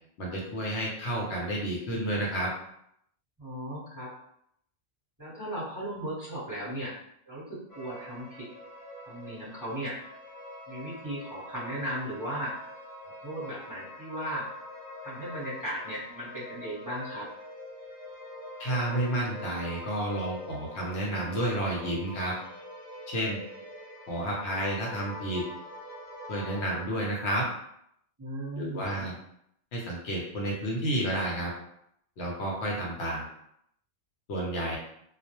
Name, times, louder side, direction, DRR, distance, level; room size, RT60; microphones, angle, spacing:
voice 1, 0.2-2.5 18.6-22.3 23.1-23.4 24.1-25.4 26.3-27.4 28.6-29.1 29.7-31.5 32.2-33.3 34.3-34.8, right 1 dB, 70° left, -2 dB, 0.9 m, -31 dB
voice 2, 3.4-4.1 5.2-6.9 7.3-8.5 9.1-10.0 10.7-12.6 13.0-14.5 15.0-17.3 28.2-29.1, right 1 dB, 20° right, -10 dB, 0.8 m, -36 dB
sound 1, 7.7-26.8, left 1 dB, 35° left, 0.3 m, -44 dB
2.3 x 2.0 x 2.8 m, 0.73 s
omnidirectional pair, 1.2 m